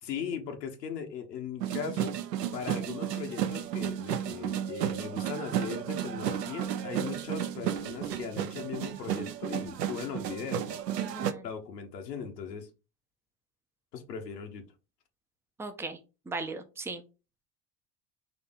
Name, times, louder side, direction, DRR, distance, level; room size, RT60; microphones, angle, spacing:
voice 1, 0.0-2.2 2.5-10.7 11.4-12.7 13.9-14.6, left 6 dB, 80° left, 0.9 m, -39 dB
sound 1, 1.6-11.3, right 10 dB, 80° right, 0.6 m, -33 dB
voice 2, 11.0-11.5 15.6-16.0 16.3-17.0, right 3 dB, 5° right, 0.3 m, -37 dB
4.1 x 2.8 x 3.9 m
figure-of-eight pair, 70°, 48 cm